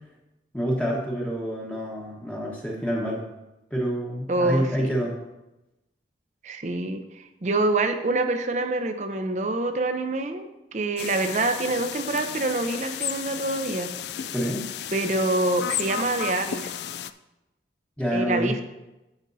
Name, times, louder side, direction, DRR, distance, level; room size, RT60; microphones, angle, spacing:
voice 1, 0.5-3.2 3.7-5.2 14.3-14.7 18.0-18.6, equal, 5° left, -3 dB, 1.2 m, -27 dB
voice 2, 4.3-4.9 6.4-13.9 14.9-16.7 18.1-18.6, right 2 dB, 40° right, 7 dB, 0.6 m, -26 dB
sound 1, 11.0-17.1, left 10 dB, 75° left, 0.3 m, -33 dB
15.0 x 5.2 x 2.7 m, 0.96 s
head